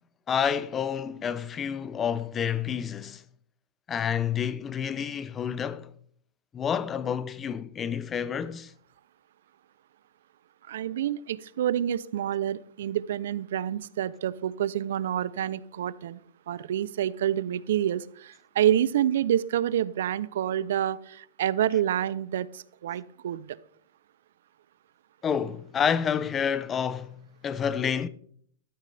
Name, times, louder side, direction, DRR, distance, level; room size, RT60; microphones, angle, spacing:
voice 1, 0.3-3.2 3.9-5.9 6.5-8.7 25.2-28.1, left 7 dB, 20° left, 0.7 m, -29 dB
voice 2, 10.7-16.2 16.5-23.5, right 11 dB, 75° right, 0.6 m, -28 dB
13.5 x 11.5 x 3.4 m
hypercardioid pair, 135°, 0 cm